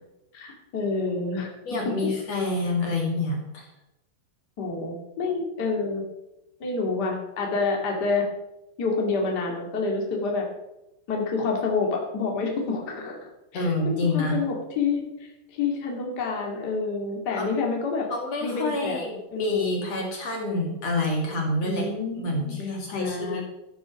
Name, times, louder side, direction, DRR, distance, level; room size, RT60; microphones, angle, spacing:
voice 1, 0.7-1.5 1.8-1.9 4.6-6.0 6.6-8.3 8.8-10.4 11.1-15.0 15.5-18.1 18.4-19.0 19.3-19.6 21.6-22.6 22.9-23.4, left 4 dB, 35° left, 0 dB, 2.4 m, -28 dB
voice 2, 1.7-3.7 13.5-14.4 17.3-17.5 18.1-21.9 22.2-23.4, left 2 dB, 50° left, 0 dB, 2.9 m, -27 dB
14.0 x 8.0 x 6.3 m, 0.92 s
omnidirectional pair, 4.0 m